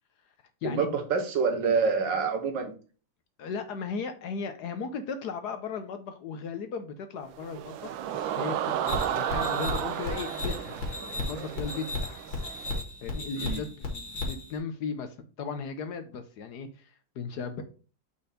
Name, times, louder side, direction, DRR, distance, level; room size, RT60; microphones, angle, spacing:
voice 1, 0.6-2.7 13.4-13.6, right 5 dB, 70° right, 4 dB, 1.9 m, -27 dB
voice 2, 3.4-8.0 8.3-12.2 13.0-17.6, left 5 dB, 65° left, 8 dB, 1.2 m, -36 dB
sound 1, 7.3-12.8, right 10 dB, 90° right, 1.4 m, -33 dB
sound 2, 8.9-14.6, left 2 dB, 80° left, 2.5 m, -34 dB
5.3 x 4.4 x 5.0 m, 0.37 s
omnidirectional pair, 2.1 m